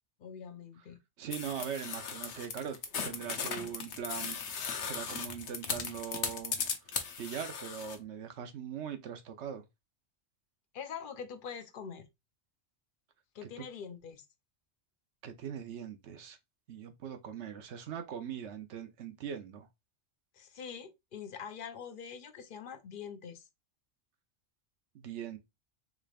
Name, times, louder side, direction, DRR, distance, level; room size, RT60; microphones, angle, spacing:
voice 1, 0.2-1.0 10.7-12.1 13.3-14.2 20.3-23.5, left 7 dB, 55° left, 0.7 m, -44 dB
voice 2, 1.2-2.8 3.0-4.4 4.8-6.6 6.9-9.6 13.6-13.7 15.2-16.4 16.7-19.7 24.9-25.4, right 8 dB, 90° right, 1.0 m, -41 dB
sound 1, 1.3-8.0, left 6 dB, 80° left, 1.0 m, -37 dB
3.7 x 3.3 x 2.3 m
omnidirectional pair, 1.1 m